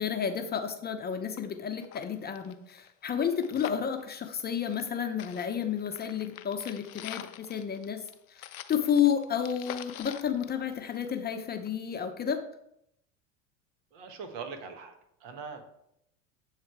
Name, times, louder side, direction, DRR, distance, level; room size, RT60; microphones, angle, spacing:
voice 1, 0.0-8.0 8.3-8.4 8.7-12.4, left 8 dB, 25° left, 6 dB, 0.6 m, -31 dB
sound 1, 1.0-1.1 1.4-1.5 1.8-4.9 5.2-11.3 11.7-11.8, left 12 dB, 85° left, 0.5 m, -45 dB
voice 2, 13.9-14.9 15.2-15.6, right 5 dB, 65° right, 6 dB, 1.2 m, -41 dB
7.6 x 3.2 x 4.6 m, 0.78 s
hypercardioid pair, 85°, 40 cm